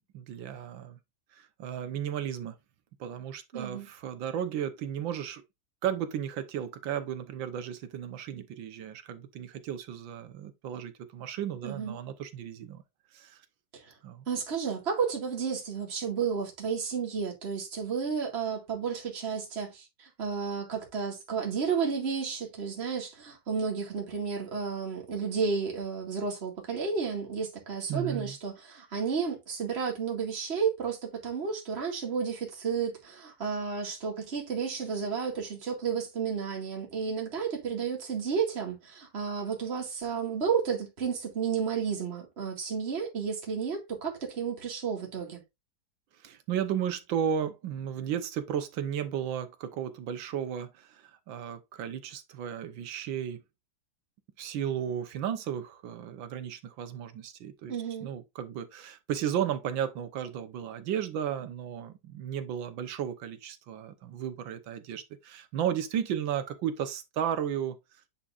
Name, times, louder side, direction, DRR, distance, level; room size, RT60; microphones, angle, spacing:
voice 1, 0.1-1.0 1.3-2.5 3.0-5.4 5.8-12.8 13.1-13.4 14.0-14.2 27.9-28.3 46.2-53.4 54.4-57.8 58.0-67.8, right 9 dB, 75° right, 1.6 m, -34 dB
voice 2, 3.5-3.9 11.6-12.0 13.7-13.9 14.3-45.4 57.7-58.1, right 6 dB, 35° right, 2.2 m, -32 dB
9.7 x 4.2 x 2.5 m
omnidirectional pair, 2.1 m